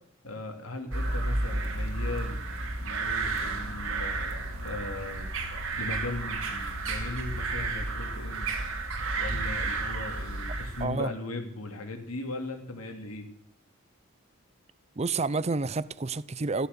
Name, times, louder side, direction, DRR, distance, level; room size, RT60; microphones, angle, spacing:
voice 1, 0.2-2.4 2.8-8.5 9.2-13.3, left 2 dB, 85° left, 2.8 m, -38 dB
sound 1, 0.9-10.8, right 2 dB, 70° right, 2.5 m, -32 dB
voice 2, 10.8-11.1 15.0-16.7, right 3 dB, 30° right, 0.5 m, -29 dB
14.5 x 13.0 x 6.8 m
head